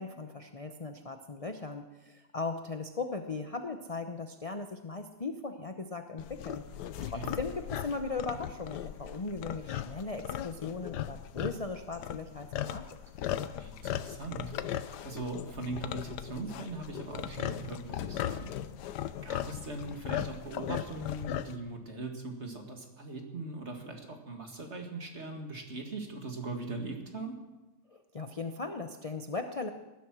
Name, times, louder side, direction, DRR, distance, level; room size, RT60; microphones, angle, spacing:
voice 1, 0.0-6.6 7.1-13.0 27.9-29.7, left 3 dB, 35° left, 6 dB, 0.6 m, -38 dB
sound 1, 6.2-21.6, left 11 dB, 75° left, 1.3 m, -38 dB
voice 2, 13.6-18.5 19.2-27.4, right 3 dB, 40° right, 3 dB, 2.3 m, -40 dB
19.0 x 11.5 x 6.1 m, 1.1 s
omnidirectional pair, 1.8 m